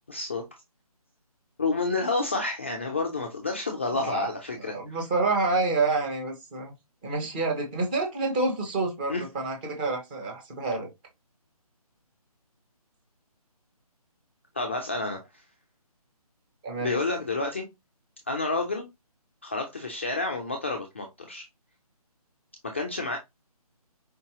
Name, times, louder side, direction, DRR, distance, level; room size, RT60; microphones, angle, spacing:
voice 1, 0.1-0.4 1.6-5.0 9.1-9.2 14.5-15.2 16.8-17.6 18.3-18.9 19.4-21.4 22.6-23.2, left 3 dB, 20° left, 0.4 m, -29 dB
voice 2, 3.9-4.3 4.6-6.7 7.0-10.9 16.6-17.0, right 3 dB, 15° right, 1.0 m, -28 dB
4.6 x 2.8 x 2.9 m
figure-of-eight pair, 160°, 20 cm